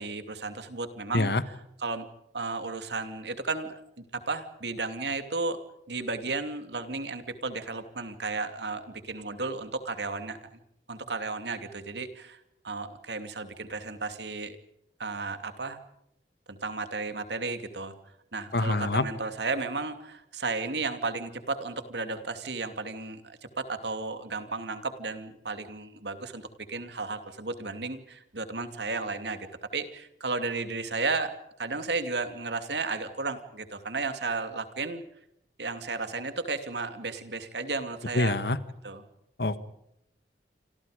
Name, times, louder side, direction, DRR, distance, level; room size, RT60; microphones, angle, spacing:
voice 1, 0.0-2.1 2.3-10.5 10.9-14.6 15.0-15.8 16.5-17.9 18.3-29.5 29.7-31.3 31.6-35.0 35.6-38.4 38.8-39.0, right 3 dB, 75° right, 9 dB, 2.6 m, -34 dB
voice 2, 18.5-19.0 38.1-38.6 39.4-39.7, left 2 dB, 65° left, 13 dB, 1.6 m, -25 dB
28.0 x 26.5 x 5.1 m, 0.76 s
head